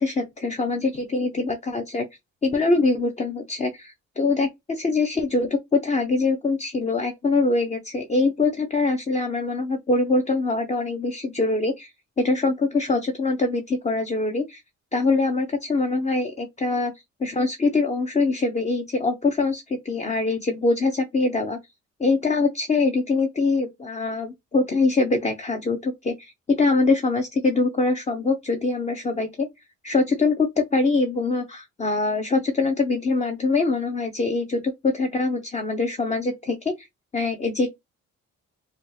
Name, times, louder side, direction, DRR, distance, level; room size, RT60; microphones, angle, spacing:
voice 1, 0.0-2.1 2.4-11.9 12.2-14.6 14.9-16.9 17.2-21.6 22.0-29.5 29.8-36.9 37.1-37.7, left 3 dB, 25° left, 0.7 m, -23 dB
4.1 x 2.4 x 3.2 m
cardioid pair, 90°, 30 cm